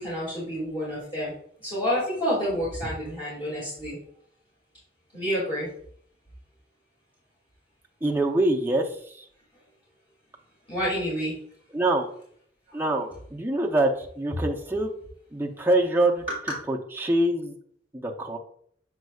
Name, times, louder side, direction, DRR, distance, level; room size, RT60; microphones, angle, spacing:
voice 1, 0.0-1.3 1.6-4.0 5.1-5.7 10.7-11.3, equal, 30° left, -9 dB, 2.3 m, -28 dB
voice 2, 8.0-9.3 11.7-12.1 12.7-14.9 15.3-16.2 16.7-17.6 17.9-18.4, right 1 dB, 15° right, 0 dB, 0.7 m, -25 dB
7.8 x 5.2 x 2.4 m, 0.62 s
head